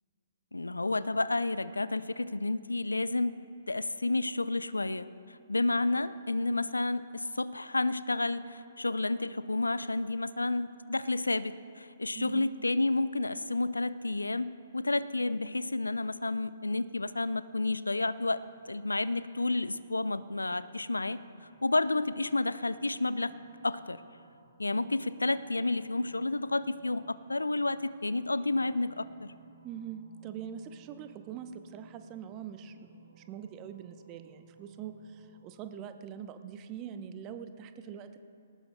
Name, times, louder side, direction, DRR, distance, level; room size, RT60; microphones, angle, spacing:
voice 1, 0.5-3.4 3.7-18.4 18.7-21.2 21.6-23.3 23.6-24.0 24.6-29.3, left 2 dB, 80° left, 15 dB, 0.4 m, -30 dB
voice 2, 12.1-12.5 29.6-38.2, right 8 dB, 25° right, 9 dB, 0.7 m, -43 dB
sound 1, 18.1-35.7, right 4 dB, 45° right, 2.6 m, -62 dB
20.0 x 18.5 x 2.2 m, 2.4 s
figure-of-eight pair, 125°, 0 cm